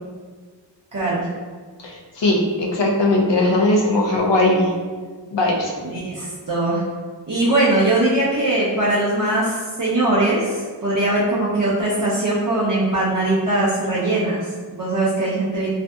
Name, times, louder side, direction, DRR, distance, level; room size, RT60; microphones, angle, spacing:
voice 1, 0.9-1.3 5.8-6.8 7.3-15.7, right 2 dB, 45° right, -9 dB, 0.6 m, -21 dB
voice 2, 1.8-4.7 5.3-5.7, left 2 dB, 70° left, -2 dB, 0.6 m, -19 dB
2.6 x 2.5 x 2.2 m, 1.5 s
wide cardioid pair, 55°, 44 cm